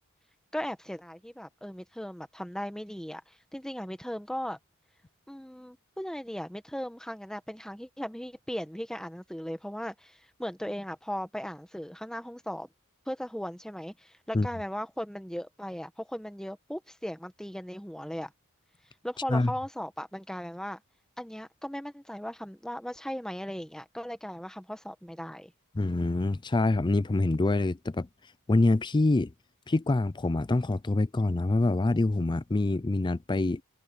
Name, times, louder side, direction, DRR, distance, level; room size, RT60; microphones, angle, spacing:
voice 1, 0.5-4.6 5.3-12.7 13.1-18.3 19.0-20.8 21.2-25.5, equal, 5° left, 1.3 m, -37 dB
voice 2, 25.7-28.1 28.5-29.3 29.7-33.6, left 2 dB, 20° left, 0.4 m, -25 dB
head